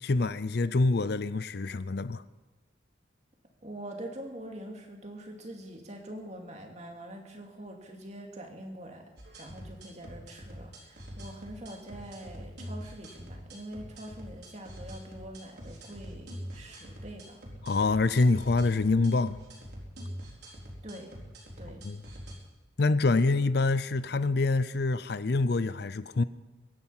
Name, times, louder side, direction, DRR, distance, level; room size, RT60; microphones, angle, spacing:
voice 1, 0.0-2.2 17.6-19.4 21.8-22.0 22.8-26.2, left 3 dB, 55° left, 0.5 m, -26 dB
voice 2, 3.6-9.0 9.4-17.4 20.8-21.1 21.6-21.8, right 1 dB, 35° right, 2.4 m, -44 dB
sound 1, 9.2-22.4, equal, 60° right, 4.3 m, -44 dB
23.5 x 10.5 x 5.7 m
head